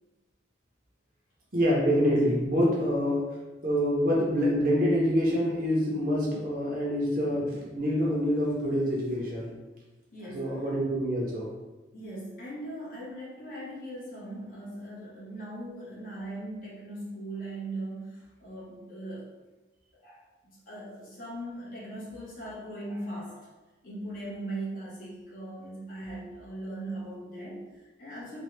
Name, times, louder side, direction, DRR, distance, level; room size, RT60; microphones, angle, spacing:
voice 1, 1.5-3.2 3.6-9.5 10.3-11.5, equal, 50° right, -3 dB, 0.8 m, -26 dB
voice 2, 10.1-10.6 11.9-19.3 19.9-23.5 23.8-28.4, right 1 dB, 50° left, -8 dB, 1.2 m, -39 dB
3.2 x 2.3 x 3.2 m, 1.1 s
head